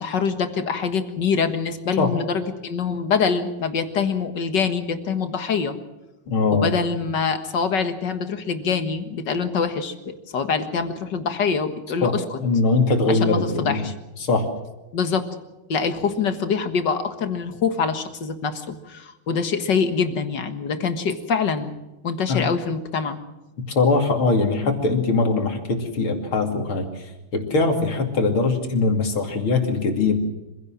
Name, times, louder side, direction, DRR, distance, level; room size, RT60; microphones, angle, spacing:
voice 1, 0.0-5.7 6.5-12.4 13.1-13.9 14.9-15.3 15.7-21.7 22.0-23.2, left 5 dB, 55° left, 8 dB, 2.2 m, -24 dB
voice 2, 6.3-6.8 12.0-12.1 12.4-13.8 14.2-14.5 22.3-22.5 23.6-30.1, left 3 dB, 70° left, 4 dB, 3.5 m, -21 dB
26.0 x 16.5 x 7.5 m, 1.0 s
omnidirectional pair, 2.4 m